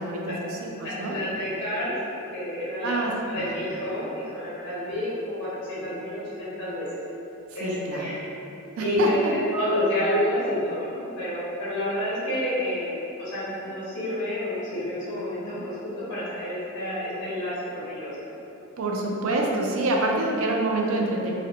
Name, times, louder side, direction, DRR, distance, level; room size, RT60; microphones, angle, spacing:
voice 1, 0.0-1.2 2.8-3.5 7.6-8.1 8.8-9.3 18.8-21.4, right 2 dB, 65° right, 0 dB, 0.4 m, -26 dB
voice 2, 0.8-1.9 2.3-3.0 3.3-6.9 7.5-8.3 8.8-18.1, left 1 dB, 55° left, -9 dB, 1.0 m, -29 dB
3.7 x 2.1 x 2.8 m, 2.8 s
head